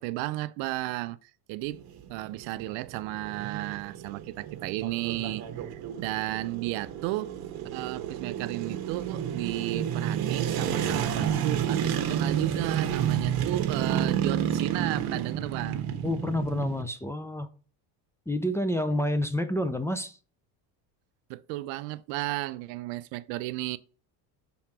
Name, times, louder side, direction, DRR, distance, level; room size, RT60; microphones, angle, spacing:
voice 1, 0.0-1.8 2.1-7.4 7.7-15.9 21.3-23.8, right 17 dB, 75° right, 0.6 m, -34 dB
sound 1, 1.6-16.8, right 9 dB, 55° right, 1.2 m, -30 dB
voice 2, 16.0-17.5 18.3-20.2, left 1 dB, 5° left, 0.5 m, -28 dB
5.6 x 3.8 x 5.9 m
supercardioid pair, 100°, 46 cm